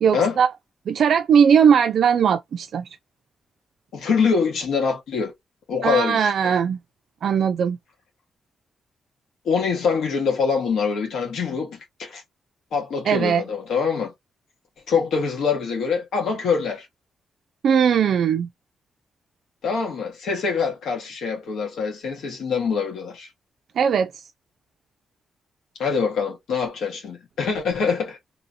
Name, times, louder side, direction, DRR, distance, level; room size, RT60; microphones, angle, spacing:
voice 1, 0.0-0.5 0.9-2.9 5.8-6.8 7.2-7.8 13.1-13.4 17.6-18.5 23.8-24.1, right 7 dB, 70° right, 0.3 m, -19 dB
voice 2, 3.9-5.3 5.7-6.5 9.4-12.2 12.7-14.1 14.9-16.9 19.6-23.3 25.8-28.2, left 5 dB, 90° left, 1.2 m, -24 dB
2.8 x 2.7 x 2.5 m
wide cardioid pair, 135°, 0 cm